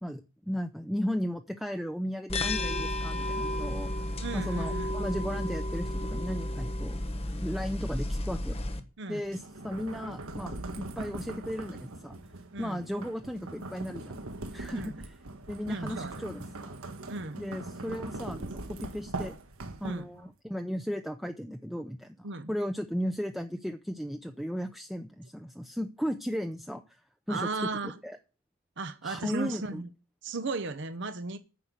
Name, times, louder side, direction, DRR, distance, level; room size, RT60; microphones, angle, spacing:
voice 1, 0.0-3.9 4.3-7.0 7.4-8.6 9.1-12.2 12.6-14.2 14.5-15.1 15.5-16.8 17.4-19.4 19.8-27.0 27.3-27.5 27.8-28.2 29.0-29.8, equal, ahead, 0.6 m, -35 dB
sound 1, 2.3-8.8, left 1 dB, 30° left, 1.2 m, -32 dB
voice 2, 4.2-5.0 9.0-9.2 12.5-12.8 14.7-15.0 15.7-16.3 17.1-17.5 19.8-20.3 22.2-22.5 27.3-28.0 28.8-29.9 30.2-31.4, right 3 dB, 55° right, 0.8 m, -36 dB
sound 2, 9.2-20.2, right 2 dB, 85° right, 1.5 m, -41 dB
9.6 x 6.1 x 8.1 m
head